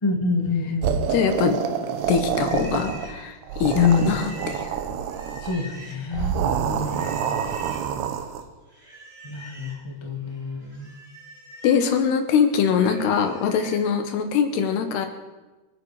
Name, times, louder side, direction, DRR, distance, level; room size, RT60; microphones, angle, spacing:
voice 1, 0.0-1.0 3.7-4.1 5.4-7.6 9.2-11.0, left 5 dB, 25° left, 1 dB, 0.5 m, -26 dB
sound 1, 0.8-3.1 3.4-5.6 6.1-8.4, right 8 dB, 85° right, 3.1 m, -27 dB
voice 2, 1.1-1.6 2.1-4.7 11.6-15.1, left 7 dB, 85° left, 7 dB, 3.5 m, -23 dB
Livestock farm animals working animals, 2.0-6.2 6.8-7.9 8.7-9.8 10.2-13.9, right 1 dB, 15° right, 2.8 m, -44 dB
27.5 x 9.8 x 5.0 m, 1.2 s
omnidirectional pair, 4.6 m